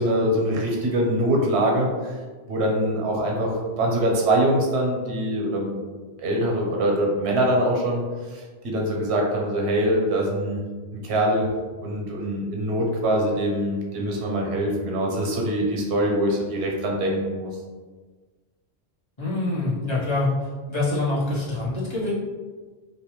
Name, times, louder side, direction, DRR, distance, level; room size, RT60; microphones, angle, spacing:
voice 1, 0.0-2.2 2.5-5.8 6.2-8.0 8.3-10.6 10.9-11.5 11.8-17.5, right 1 dB, 85° right, -1 dB, 0.9 m, -23 dB
voice 2, 19.2-20.3 20.7-22.1, left 2 dB, 30° left, -8 dB, 0.8 m, -25 dB
2.7 x 2.2 x 2.9 m, 1.4 s
omnidirectional pair, 1.1 m